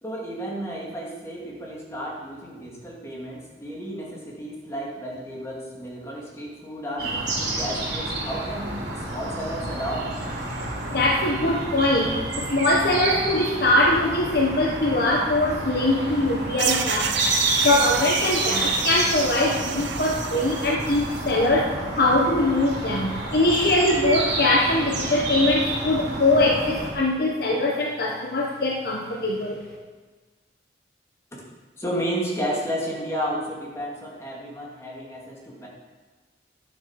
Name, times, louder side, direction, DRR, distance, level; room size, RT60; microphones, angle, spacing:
voice 1, 0.0-10.2 31.8-35.7, equal, 15° left, -4 dB, 2.8 m, -32 dB
sound 1, 7.0-26.9, right 2 dB, 70° right, 3.9 m, -29 dB
voice 2, 10.9-17.2 17.6-21.7 22.0-29.6, left 1 dB, 55° left, 0 dB, 1.2 m, -22 dB
sound 2, 16.6-21.3, right 8 dB, 90° right, 0.8 m, -30 dB
11.5 x 7.7 x 6.0 m, 1.3 s
head